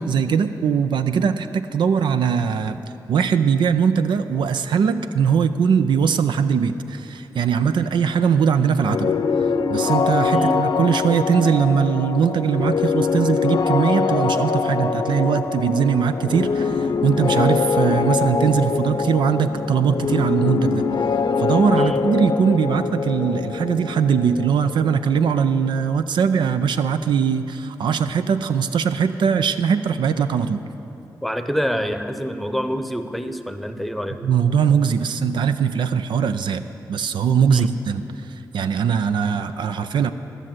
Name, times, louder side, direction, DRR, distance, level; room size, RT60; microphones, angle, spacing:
voice 1, 0.0-2.8 3.1-9.1 9.7-20.8 21.4-30.6 34.2-36.6 36.9-40.1, right 7 dB, 70° right, 10 dB, 0.4 m, -20 dB
sound 1, 8.8-26.5, left 5 dB, 60° left, 0.6 m, -23 dB
voice 2, 10.3-10.7 21.8-22.0 31.2-34.3 37.5-37.7, equal, ahead, 8 dB, 0.9 m, -26 dB
14.5 x 6.4 x 7.6 m, 2.9 s
supercardioid pair, 40°, 8 cm